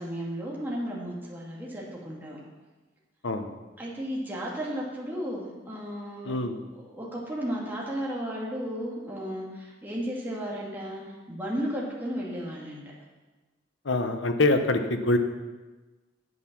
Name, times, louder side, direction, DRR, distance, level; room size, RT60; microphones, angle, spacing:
voice 1, 0.0-2.4 3.8-6.4 6.7-12.8, equal, 10° right, -5 dB, 2.1 m, -34 dB
voice 2, 6.2-6.6 13.8-15.2, left 2 dB, 85° left, 7 dB, 1.0 m, -24 dB
9.5 x 8.0 x 6.2 m, 1.2 s
head